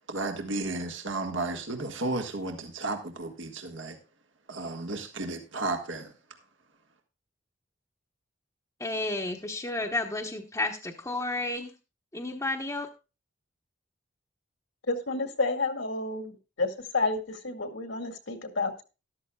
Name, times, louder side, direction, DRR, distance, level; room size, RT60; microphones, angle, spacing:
voice 1, 0.1-4.0 4.5-6.1, right 2 dB, 70° right, 4 dB, 1.7 m, -33 dB
voice 2, 8.8-11.7 12.1-12.9, left 2 dB, 15° left, -2 dB, 1.0 m, -31 dB
voice 3, 14.9-18.8, left 3 dB, 70° left, 5 dB, 2.1 m, -30 dB
13.5 x 12.5 x 2.3 m, 0.30 s
head